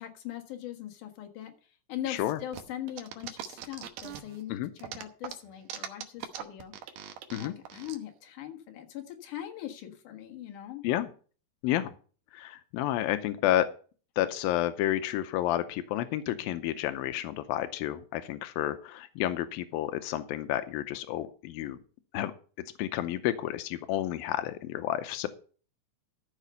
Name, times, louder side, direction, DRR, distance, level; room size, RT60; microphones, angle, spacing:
voice 1, 0.0-1.5 1.9-6.7 7.4-10.8, left 12 dB, 65° left, 5 dB, 2.9 m, -41 dB
voice 2, 2.1-2.4 4.5-4.7 7.3-7.5 10.8-11.1 11.6-11.9 12.3-13.7 14.2-21.8 22.1-22.3 22.8-25.3, left 13 dB, 90° left, 10 dB, 2.5 m, -30 dB
sound 1, 2.5-4.4 4.8-8.0, right 10 dB, 85° right, 2.9 m, -41 dB
13.0 x 6.6 x 5.5 m, 0.40 s
omnidirectional pair, 4.1 m